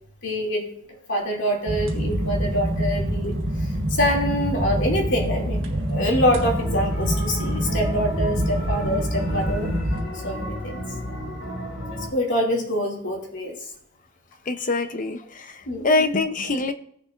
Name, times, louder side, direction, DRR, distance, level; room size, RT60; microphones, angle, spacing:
voice 1, 0.2-0.7 1.1-3.4 3.9-9.7 10.1-10.8 12.1-13.7 15.7-16.0, equal, 60° left, -1 dB, 2.6 m, -25 dB
sound 1, 1.7-10.0, equal, 65° right, 1.4 m, -26 dB
sound 2, 6.3-12.1, equal, 85° left, 4.1 m, -33 dB
voice 2, 14.5-15.2 15.8-16.7, left 3 dB, 40° left, 9 dB, 0.7 m, -23 dB
17.0 x 6.7 x 2.5 m, 0.67 s
head